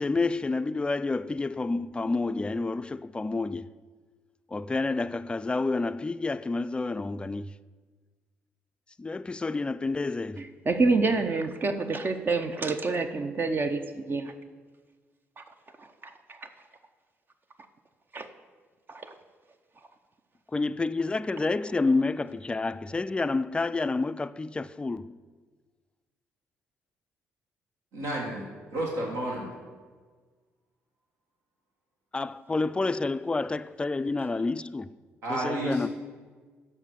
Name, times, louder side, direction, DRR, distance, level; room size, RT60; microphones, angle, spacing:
voice 1, 0.0-3.7 4.5-7.5 9.0-10.5 20.5-25.2 32.1-35.0 35.3-35.9, left 3 dB, 20° left, 0.3 m, -29 dB
voice 2, 10.7-14.3 15.4-15.5 18.1-18.3 18.9-19.1, right 3 dB, 40° right, 0.6 m, -27 dB
voice 3, 27.9-28.4 28.7-29.5 35.2-35.9, right 1 dB, 75° right, 1.7 m, -30 dB
7.3 x 5.4 x 6.7 m
supercardioid pair, 60°, 5 cm